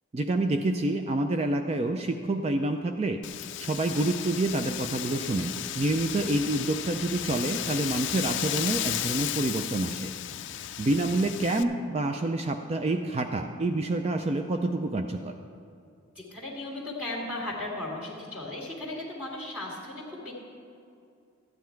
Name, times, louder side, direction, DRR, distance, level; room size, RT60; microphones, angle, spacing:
voice 1, 0.1-10.1 10.8-15.3, right 2 dB, 30° right, 6 dB, 0.4 m, -28 dB
Wind, 3.2-11.6, left 12 dB, 55° left, 0.4 m, -34 dB
voice 2, 16.2-20.3, left 2 dB, 5° right, -6 dB, 2.2 m, -36 dB
13.5 x 9.5 x 4.5 m, 2.5 s
head